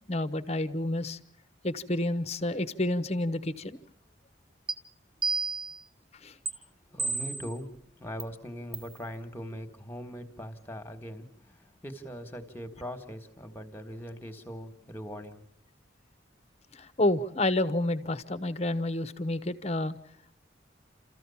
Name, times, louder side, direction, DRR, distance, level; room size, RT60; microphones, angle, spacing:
voice 1, 0.1-1.2 1.6-3.8 6.2-6.3 16.8-20.0, left 1 dB, 35° left, 12 dB, 0.9 m, -29 dB
sound 1, 4.7-4.8 5.2-5.8 6.5-6.6 7.0-7.5 8.2-8.3 8.7-8.9, right 4 dB, 30° right, 1.2 m, -31 dB
voice 2, 6.9-15.4, equal, 10° left, 7 dB, 1.6 m, -41 dB
29.5 x 14.5 x 7.2 m, 0.76 s
head